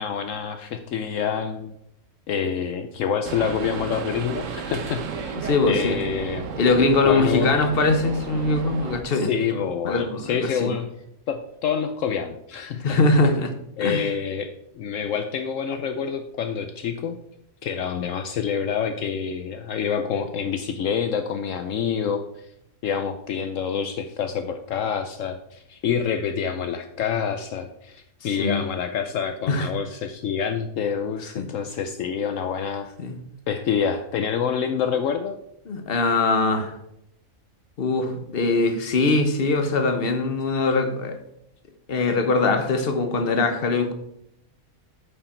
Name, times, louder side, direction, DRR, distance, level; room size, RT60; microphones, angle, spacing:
voice 1, 0.0-1.7 2.3-5.4 5.7-6.6 7.0-7.5 9.1-10.9 11.3-13.0 13.8-17.2 17.6-22.5 22.8-32.9 33.5-35.4, left 7 dB, 70° left, 7 dB, 1.0 m, -27 dB
sound 1, 3.2-9.0, right 6 dB, 70° right, 1.2 m, -33 dB
voice 2, 5.4-6.0 6.6-9.3 9.8-10.7 12.8-13.5 13.8-14.0 28.4-28.6 29.5-29.7 31.4-31.5 33.0-33.2 35.7-36.7 37.8-41.2 41.9-43.9, left 3 dB, 45° left, 7 dB, 1.2 m, -22 dB
9.0 x 6.8 x 4.4 m, 0.79 s
omnidirectional pair, 1.4 m